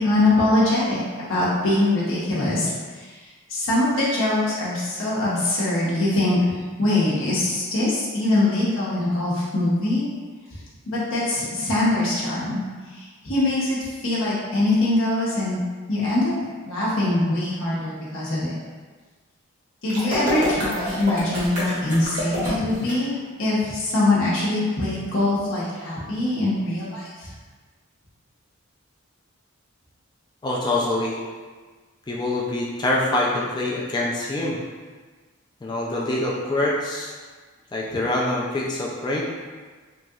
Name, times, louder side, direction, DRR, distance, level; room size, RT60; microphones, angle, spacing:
voice 1, 0.0-3.1 3.5-6.4 6.8-10.1 10.9-12.6 12.9-15.6 15.9-16.3 16.7-18.5 19.8-27.3, left 2 dB, 70° left, -8 dB, 0.7 m, -23 dB
sound 1, 19.9-22.9, equal, 40° right, 0.8 m, -27 dB
voice 2, 30.4-31.2 32.1-34.6 35.6-37.2 37.7-39.2, left 1 dB, 20° left, -3 dB, 0.3 m, -25 dB
3.0 x 2.7 x 2.4 m, 1.4 s
head